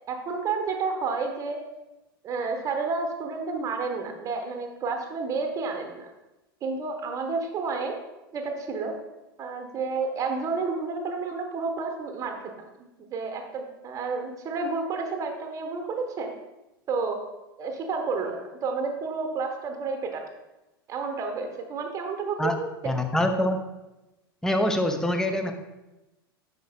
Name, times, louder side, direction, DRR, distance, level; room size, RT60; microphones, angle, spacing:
voice 1, 0.1-1.6 2.2-6.1 6.6-8.0 8.3-8.9 9.4-12.4 12.8-16.3 16.9-17.2 17.6-20.2 20.9-22.7, right 4 dB, 25° right, 4 dB, 1.0 m, -30 dB
voice 2, 22.8-23.6 24.4-25.5, left 1 dB, 5° left, 6 dB, 0.6 m, -24 dB
11.0 x 4.6 x 2.2 m, 1.0 s
figure-of-eight pair, 85°, 12 cm